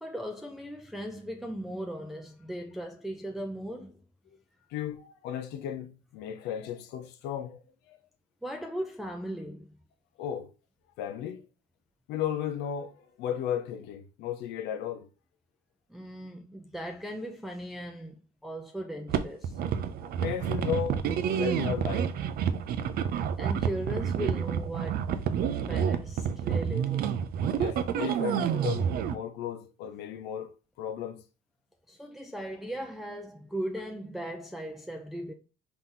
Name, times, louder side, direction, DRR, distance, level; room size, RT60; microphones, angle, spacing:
voice 1, 0.0-4.0 8.4-9.7 15.9-18.2 18.4-19.6 23.4-25.1 25.7-27.3 31.9-35.3, equal, ahead, 0.5 m, -38 dB
voice 2, 4.7-7.6 7.9-8.0 10.2-10.5 11.0-11.4 12.1-15.1 20.2-21.0 21.3-22.2 27.6-31.2, left 9 dB, 90° left, 0.6 m, -35 dB
sound 1, 19.1-29.2, right 8 dB, 65° right, 0.5 m, -29 dB
3.9 x 2.9 x 3.8 m
cardioid pair, 110°, 17 cm